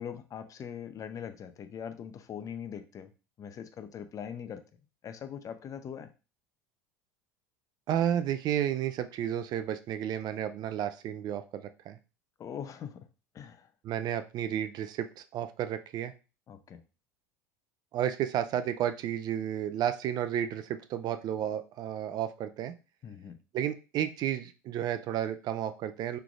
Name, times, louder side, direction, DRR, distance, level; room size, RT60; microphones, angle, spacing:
voice 1, 0.0-3.1 3.4-4.6 5.0-6.1 12.4-13.1 13.3-13.7 16.5-16.8 23.0-23.4, left 8 dB, 35° left, 9 dB, 0.7 m, -41 dB
voice 2, 7.9-12.0 13.8-16.1 17.9-22.7 23.5-26.2, right 10 dB, 45° right, 11 dB, 0.5 m, -32 dB
5.7 x 3.4 x 2.4 m, 0.32 s
hypercardioid pair, 80°, 9 cm